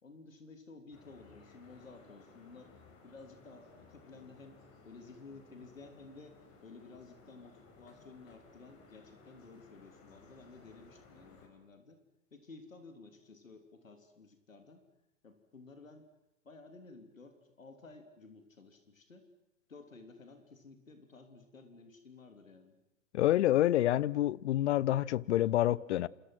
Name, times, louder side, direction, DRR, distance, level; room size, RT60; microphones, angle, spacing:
voice 1, 0.0-2.7 3.0-12.0 12.3-14.8 15.2-16.1 16.4-19.3 19.7-22.8, left 3 dB, 85° left, 3.4 m, -54 dB
sound 1, 0.9-11.5, left 3 dB, 35° left, 6.4 m, -59 dB
voice 2, 23.1-26.1, left 13 dB, 60° left, 0.9 m, -27 dB
28.5 x 27.5 x 6.1 m
figure-of-eight pair, 105°, 39 cm